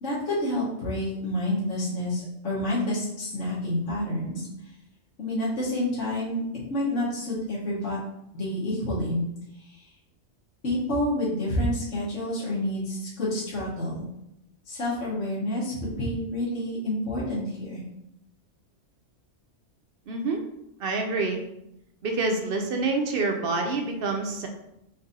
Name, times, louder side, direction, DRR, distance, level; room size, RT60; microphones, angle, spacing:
voice 1, 0.0-4.5 5.2-6.4 6.7-8.0 8.3-9.2 9.6-9.8 10.6-14.0 14.7-17.8, left 1 dB, 70° left, -8 dB, 1.5 m, -28 dB
voice 2, 20.1-20.4 20.8-21.4 22.0-24.5, right 3 dB, 60° right, 3 dB, 0.7 m, -27 dB
4.0 x 2.6 x 4.0 m, 0.82 s
omnidirectional pair, 1.3 m